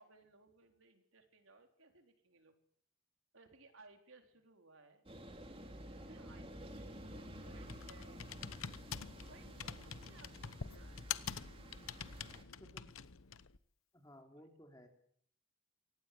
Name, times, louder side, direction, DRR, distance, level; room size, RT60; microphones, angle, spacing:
voice 1, 0.0-2.5 3.3-5.0 5.8-8.6 9.2-11.5 14.3-14.5, right 3 dB, 80° right, 5 dB, 4.1 m, -63 dB
sound 1, 5.1-12.4, equal, 25° right, 3.0 m, -51 dB
Computer keyboard, 6.6-13.6, left 7 dB, 85° left, 1.0 m, -47 dB
voice 2, 12.6-12.9 13.9-14.9, equal, 15° left, 4 dB, 3.7 m, -58 dB
23.5 x 18.5 x 8.7 m, 0.64 s
head